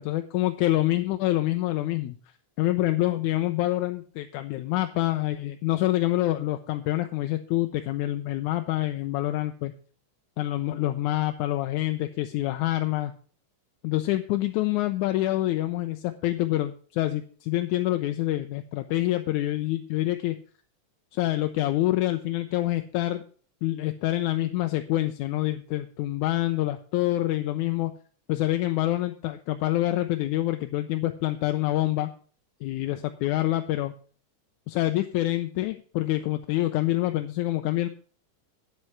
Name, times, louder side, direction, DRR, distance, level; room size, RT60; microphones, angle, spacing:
voice 1, 0.0-2.2 2.6-9.7 10.4-13.1 13.8-20.4 21.1-23.2 23.6-27.9 28.3-32.1 32.6-33.9 34.7-37.9, left 15 dB, 80° left, 8 dB, 1.9 m, -26 dB
9.5 x 7.8 x 5.6 m, 0.42 s
omnidirectional pair, 3.6 m